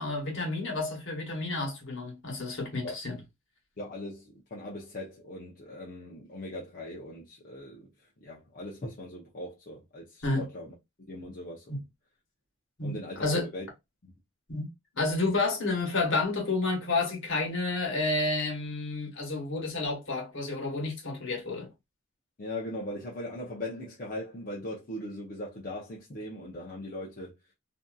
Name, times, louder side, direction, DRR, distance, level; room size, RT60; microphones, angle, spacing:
voice 1, 0.0-3.2 10.2-10.4 11.7-11.8 12.8-13.5 14.5-14.7 15.0-21.7, left 2 dB, 65° left, 1.1 m, -30 dB
voice 2, 3.8-7.9 8.2-10.7 11.1-11.8 12.8-13.3 13.5-13.7 14.0-14.2 22.4-27.4, left 1 dB, 40° left, 0.6 m, -40 dB
2.6 x 2.5 x 2.2 m
head